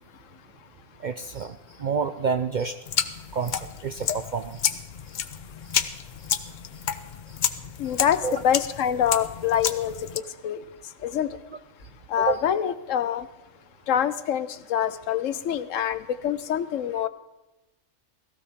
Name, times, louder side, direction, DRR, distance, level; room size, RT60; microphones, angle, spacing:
voice 1, 1.0-2.8 3.3-4.8 5.1-5.2 5.7-5.8 7.3-7.4 7.8-7.9 8.2-8.4 12.2-12.4, right 5 dB, 60° right, 10 dB, 0.5 m, -29 dB
sound 1, 2.9-10.2, left 7 dB, 50° left, 0.6 m, -30 dB
voice 2, 7.8-10.6 11.0-11.3 12.1-13.3 13.9-17.1, left 9 dB, 80° left, 13 dB, 1.1 m, -25 dB
17.0 x 15.0 x 3.6 m, 1.0 s
omnidirectional pair, 1.3 m